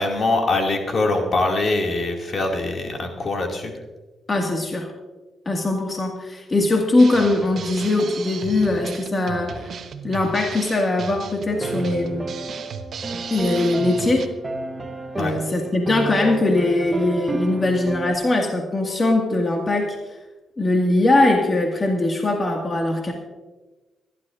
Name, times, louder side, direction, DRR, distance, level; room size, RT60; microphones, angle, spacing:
voice 1, 0.0-3.7 15.2-15.4, left 2 dB, 50° left, 2 dB, 2.4 m, -23 dB
voice 2, 4.3-4.9 5.5-9.7 10.0-12.3 13.3-14.3 15.2-20.0 20.6-23.1, left 2 dB, 35° left, 1 dB, 2.0 m, -21 dB
Drum kit, 7.0-14.3, right 6 dB, 60° right, 1.0 m, -35 dB
sound 1, 11.5-18.2, right 3 dB, 25° right, 1.4 m, -30 dB
23.0 x 12.0 x 2.6 m, 1.2 s
supercardioid pair, 55°, 0 cm